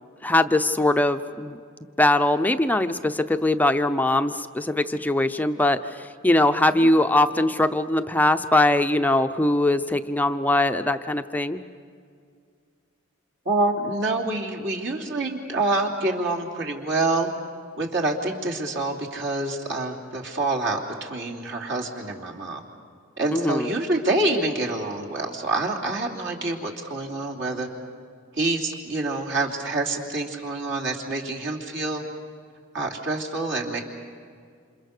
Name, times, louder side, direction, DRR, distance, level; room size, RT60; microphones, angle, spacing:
voice 1, 0.2-1.6 2.0-11.6 23.3-23.7, left 1 dB, 10° left, 8 dB, 0.6 m, -21 dB
voice 2, 13.4-17.3 17.8-22.6 23.2-27.7 28.3-32.0 32.7-33.8, right 2 dB, 60° right, 0 dB, 3.1 m, -27 dB
28.5 x 27.5 x 6.7 m, 2.2 s
head